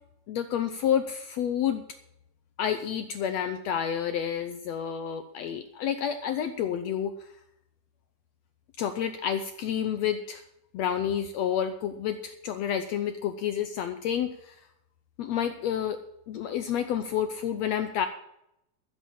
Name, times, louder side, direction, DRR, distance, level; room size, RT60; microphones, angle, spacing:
voice 1, 0.3-1.8 2.6-7.1 8.8-10.4 10.7-14.5 15.2-16.0 16.3-18.1, left 9 dB, 75° left, 8 dB, 1.6 m, -29 dB
14.0 x 8.1 x 7.2 m, 0.80 s
omnidirectional pair, 3.9 m